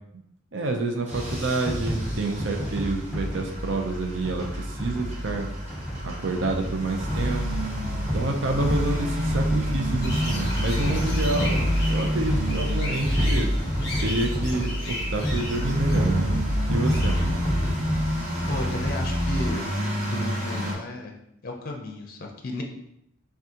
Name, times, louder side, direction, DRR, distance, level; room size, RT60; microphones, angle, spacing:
voice 1, 0.5-5.5 6.0-7.4 8.1-13.5 14.0-16.3 16.7-17.4, right 2 dB, 60° right, 2 dB, 0.6 m, -28 dB
sound 1, 1.1-19.5, equal, ahead, 0.8 m, -28 dB
sound 2, 1.1-20.7, equal, 30° right, 1.0 m, -31 dB
sound 3, 10.0-17.2, left 1 dB, 20° left, 1.0 m, -36 dB
voice 2, 18.5-19.7 20.0-21.1 21.4-22.6, left 2 dB, 45° left, 1 dB, 0.5 m, -33 dB
6.1 x 2.4 x 2.8 m, 0.80 s
head